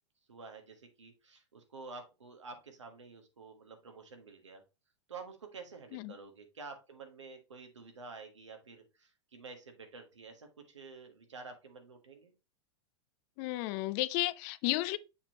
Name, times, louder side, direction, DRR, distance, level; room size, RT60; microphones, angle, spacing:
voice 1, 0.3-4.6 5.1-12.3, right 4 dB, 90° right, 1.5 m, -50 dB
voice 2, 13.4-15.0, left 18 dB, 45° left, 0.5 m, -33 dB
7.0 x 4.7 x 2.9 m
hypercardioid pair, 105°, 15 cm